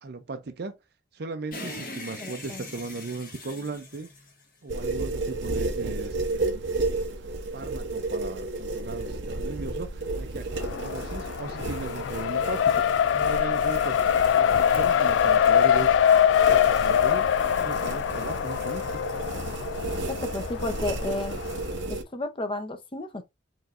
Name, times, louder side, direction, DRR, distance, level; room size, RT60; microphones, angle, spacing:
voice 1, 0.0-0.8 1.1-4.1 4.6-6.7 7.5-12.8 13.1-14.0 14.3-15.9 16.4-17.3 17.6-18.8, right 3 dB, 60° right, 0.6 m, -37 dB
sound 1, 1.5-5.0, left 2 dB, 50° left, 1.4 m, -41 dB
voice 2, 2.2-2.6 20.1-21.4 21.9-23.2, left 2 dB, 30° left, 0.8 m, -32 dB
sound 2, 4.7-22.0, right 2 dB, 85° right, 0.8 m, -33 dB
Race car auto racing, 10.6-21.6, left 9 dB, 80° left, 0.3 m, -23 dB
4.7 x 3.2 x 2.5 m
head